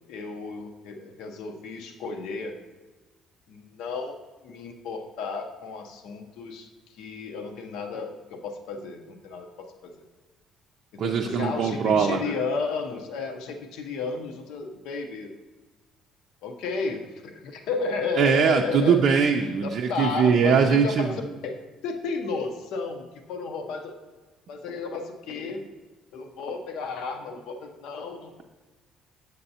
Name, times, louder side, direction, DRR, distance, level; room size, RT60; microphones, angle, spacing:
voice 1, 0.1-2.6 3.5-4.2 4.4-6.7 7.0-9.9 10.9-15.3 16.4-19.0 19.6-24.0 24.5-25.6 26.1-28.4, left 4 dB, 80° left, 4 dB, 0.7 m, -33 dB
voice 2, 11.0-12.3 18.2-21.1, right 6 dB, 55° right, 2 dB, 0.4 m, -21 dB
7.7 x 6.6 x 2.8 m, 1.2 s
cardioid pair, 125°, 0 cm